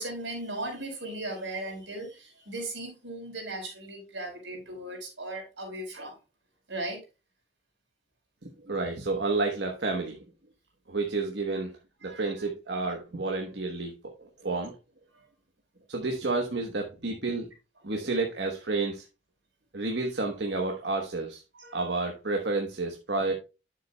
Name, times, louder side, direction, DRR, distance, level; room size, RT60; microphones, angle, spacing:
voice 1, 0.0-6.2 6.7-7.0 12.0-12.3 12.9-13.0 21.5-21.9, right 2 dB, 85° right, 4.5 m, -37 dB
voice 2, 8.4-10.2 10.9-11.7 12.0-14.7 15.9-17.5 17.8-19.0 19.7-21.4 21.7-23.3, right 3 dB, 65° right, 1.2 m, -30 dB
9.8 x 7.4 x 2.3 m
head